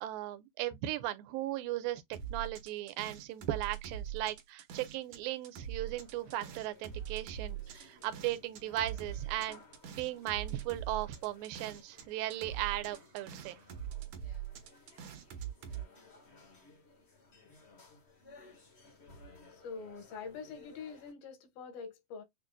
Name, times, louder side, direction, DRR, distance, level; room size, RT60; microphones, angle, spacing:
voice 1, 0.0-9.6 9.9-13.6, right 14 dB, 80° right, 2.5 m, -37 dB
sound 1, 2.1-5.2 5.4-12.0 12.3-15.8, right 10 dB, 65° right, 2.3 m, -42 dB
sound 2, 5.8-21.1, left 3 dB, 60° left, 0.6 m, -59 dB
voice 2, 19.5-22.2, left 5 dB, 85° left, 3.2 m, -45 dB
6.8 x 2.5 x 2.3 m
omnidirectional pair, 4.1 m